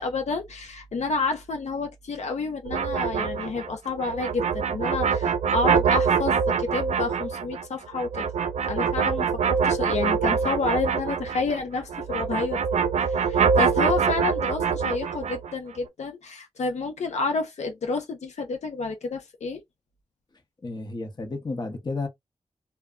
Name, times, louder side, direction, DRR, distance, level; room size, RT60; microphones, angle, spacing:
voice 1, 0.0-8.3 8.7-19.6, left 4 dB, 80° left, 0.6 m, -30 dB
sound 1, 2.7-11.6 11.9-15.5, right 6 dB, 85° right, 0.4 m, -24 dB
voice 2, 20.6-22.1, left 3 dB, 40° left, 0.8 m, -32 dB
2.2 x 2.1 x 3.6 m
wide cardioid pair, 85°, 11 cm